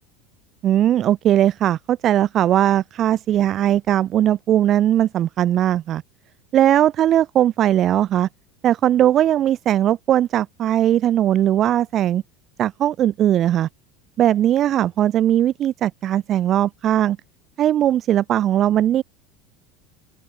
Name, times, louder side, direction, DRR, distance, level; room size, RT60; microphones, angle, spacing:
voice 1, 0.6-6.0 6.5-8.3 8.6-12.2 12.6-13.7 14.2-17.2 17.6-19.0, right 11 dB, 25° right, 0.7 m, -19 dB
open air
cardioid pair, 175°, 0 cm